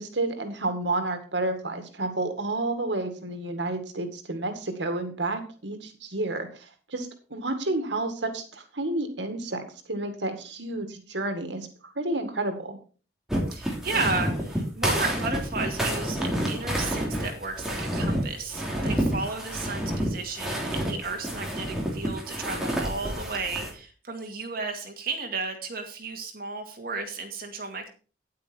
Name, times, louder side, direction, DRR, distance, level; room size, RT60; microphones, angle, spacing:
voice 1, 0.0-11.7 12.0-12.8, right 2 dB, 85° right, 7 dB, 2.0 m, -30 dB
sound 1, 13.3-23.7, equal, 5° right, 2.9 m, -29 dB
voice 2, 13.5-27.9, right 3 dB, 55° right, 4 dB, 2.2 m, -33 dB
10.0 x 8.7 x 4.5 m, 0.37 s
head